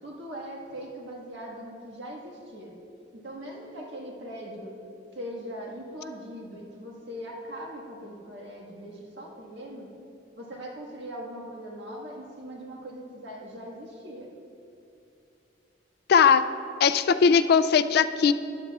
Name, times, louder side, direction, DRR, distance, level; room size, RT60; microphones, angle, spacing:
voice 1, 0.0-2.7 3.1-4.7 5.1-9.9 10.4-14.3, equal, 75° right, -1 dB, 1.6 m, -40 dB
voice 2, 16.1-16.4 16.8-18.3, left 6 dB, 55° left, 12 dB, 0.3 m, -19 dB
14.5 x 10.0 x 2.4 m, 2.7 s
head